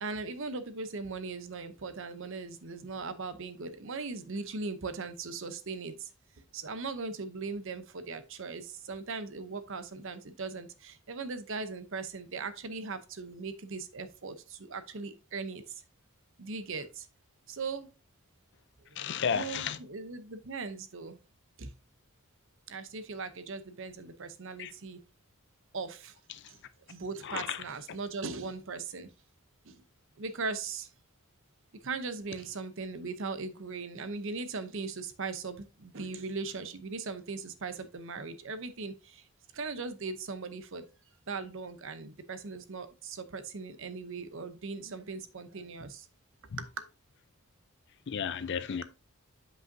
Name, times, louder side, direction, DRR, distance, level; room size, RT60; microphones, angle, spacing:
voice 1, 0.0-6.1 6.5-15.8 16.4-17.1 17.5-17.9 18.8-21.2 21.6-21.7 22.7-25.0 25.7-26.2 26.5-26.6 26.9-29.1 29.6-29.8 30.2-30.9 31.8-39.3 39.5-40.8 41.3-46.1 46.6-46.9, right 4 dB, 60° right, 0.7 m, -39 dB
voice 2, 19.0-19.8 24.6-24.7 27.2-27.6 46.5-46.6 48.1-48.8, left 7 dB, 50° left, 0.5 m, -33 dB
7.7 x 5.5 x 2.7 m
head